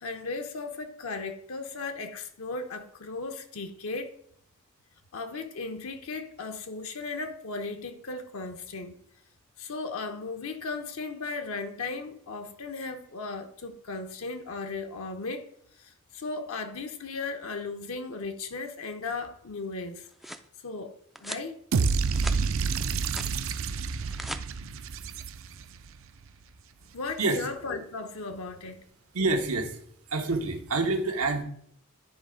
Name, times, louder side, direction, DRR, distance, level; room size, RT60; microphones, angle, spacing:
voice 1, 0.0-4.2 5.1-8.9 9.6-15.5 15.8-21.0 21.2-21.5 26.9-28.8, left 3 dB, 70° left, 0.7 m, -36 dB
sound 1, 19.8-20.5 21.1-21.5 21.9-22.4 22.8-23.3 23.9-24.4, right 1 dB, ahead, 0.3 m, -40 dB
sound 2, 21.7-25.8, right 5 dB, 65° right, 0.5 m, -28 dB
voice 2, 29.1-29.8 30.1-31.4, right 3 dB, 90° right, 1.2 m, -27 dB
10.0 x 3.3 x 5.0 m
head